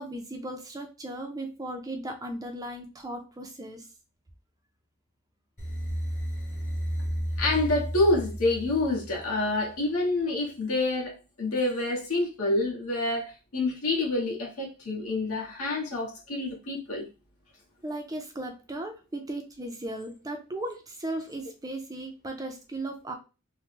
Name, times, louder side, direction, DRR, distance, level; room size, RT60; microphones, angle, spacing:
voice 1, 0.0-3.9 17.8-23.1, right 1 dB, 15° right, 0.4 m, -36 dB
sound 1, 5.6-9.7, equal, 35° left, 1.1 m, -33 dB
voice 2, 7.4-17.1, left 2 dB, 75° left, 1.3 m, -27 dB
3.1 x 2.1 x 3.3 m
head